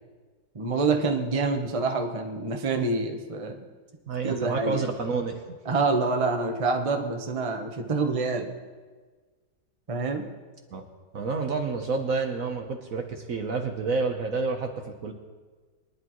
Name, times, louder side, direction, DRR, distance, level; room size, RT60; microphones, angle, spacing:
voice 1, 0.5-3.6 4.2-4.9 5.7-8.5 9.9-10.2, right 3 dB, 25° right, 3 dB, 0.8 m, -27 dB
voice 2, 4.1-5.4 10.7-10.8 11.1-15.1, right 4 dB, 50° right, 4 dB, 1.2 m, -29 dB
23.5 x 10.5 x 3.1 m, 1.4 s
omnidirectional pair, 2.1 m